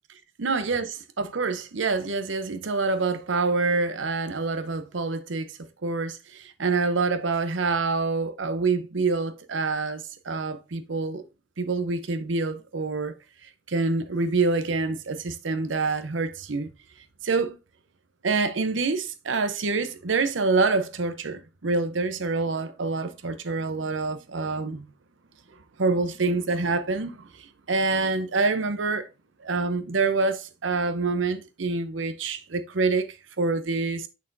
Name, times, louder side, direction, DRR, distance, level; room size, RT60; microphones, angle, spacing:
voice 1, 0.4-11.2 11.6-13.1 13.4-16.7 17.2-17.6 18.2-24.9 25.8-29.1 29.4-34.1, right 3 dB, 90° right, 0.8 m, -26 dB
6.6 x 6.2 x 2.6 m
head